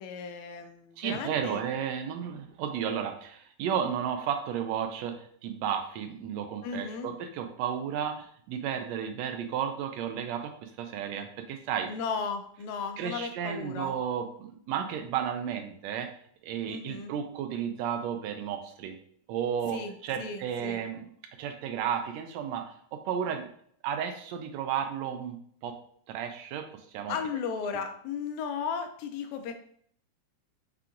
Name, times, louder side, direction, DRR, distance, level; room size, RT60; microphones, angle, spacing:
voice 1, 0.0-1.7 6.6-7.1 11.9-14.0 16.7-17.1 19.7-20.8 27.1-29.5, left 6 dB, 85° left, 7 dB, 2.0 m, -35 dB
voice 2, 1.0-11.9 13.0-16.1 16.4-19.0 19.3-21.0 21.4-23.5 23.8-25.8 26.1-26.7 26.9-27.2, right 8 dB, 80° right, 6 dB, 1.7 m, -33 dB
5.7 x 2.4 x 3.7 m, 0.62 s
omnidirectional pair, 3.3 m